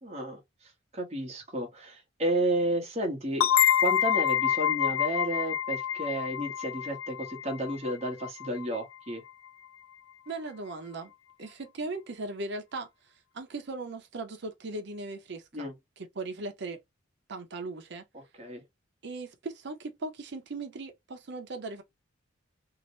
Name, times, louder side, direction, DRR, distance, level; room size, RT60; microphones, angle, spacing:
voice 1, 0.0-3.5 3.8-9.2 15.5-15.7 18.1-18.6, right 1 dB, 30° right, 1.0 m, -32 dB
sound 1, 3.4-8.8, left 10 dB, 85° left, 0.4 m, -27 dB
voice 2, 10.3-11.1 11.4-12.9 13.3-15.7 16.0-16.8 17.3-18.0 19.0-21.8, right 3 dB, 55° right, 0.6 m, -38 dB
2.8 x 2.0 x 2.7 m
head